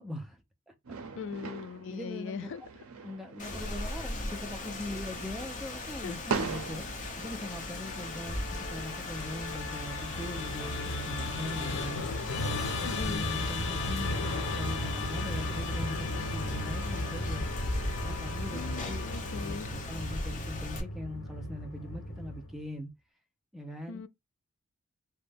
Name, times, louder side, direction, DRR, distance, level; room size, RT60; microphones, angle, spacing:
voice 1, 0.0-1.0 1.9-2.5 3.0-6.9 7.2-12.0 12.8-17.5 18.0-19.1 19.3-22.9 23.5-24.0, left 1 dB, ahead, 0.5 m, -41 dB
sound 1, 0.8-7.7, right 5 dB, 80° right, 0.5 m, -40 dB
voice 2, 1.1-2.6 6.0-6.1 12.8-13.2 18.5-19.7 23.9-24.1, left 5 dB, 55° left, 0.3 m, -39 dB
Rain, 3.4-20.8, left 2 dB, 35° left, 0.7 m, -39 dB
Musical instrument, 7.3-22.6, left 2 dB, 80° left, 0.9 m, -36 dB
2.5 x 2.1 x 3.4 m
head